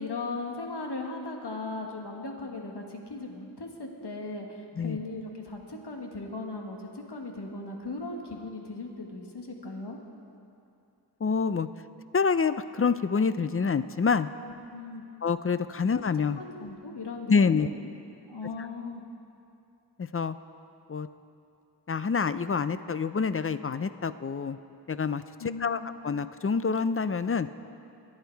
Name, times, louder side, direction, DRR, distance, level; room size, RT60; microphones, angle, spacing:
voice 1, 0.0-10.0 14.7-15.0 16.4-17.7 18.3-19.0 25.4-25.9, left 3 dB, 70° left, 2 dB, 1.6 m, -38 dB
voice 2, 11.2-11.7 12.1-14.3 15.2-16.4 17.3-17.7 20.0-20.4 20.9-21.1 21.9-24.6 24.9-27.5, left 5 dB, 35° left, 13 dB, 0.4 m, -27 dB
22.5 x 8.9 x 4.6 m, 2.6 s
wide cardioid pair, 65°, 41 cm